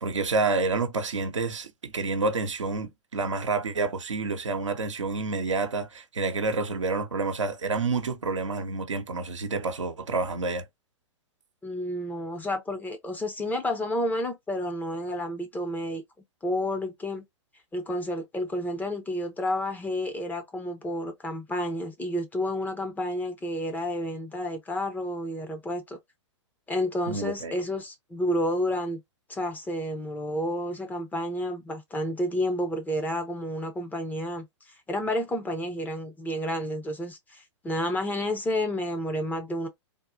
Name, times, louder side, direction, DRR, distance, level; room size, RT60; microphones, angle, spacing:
voice 1, 0.0-10.6 27.1-27.5, right 3 dB, 90° right, 0.8 m, -28 dB
voice 2, 11.6-16.0 16.4-17.2 17.7-26.0 26.7-29.0 29.3-34.5 34.9-39.7, left 1 dB, 10° left, 0.7 m, -30 dB
3.6 x 2.3 x 2.6 m
hypercardioid pair, 115°, 15 cm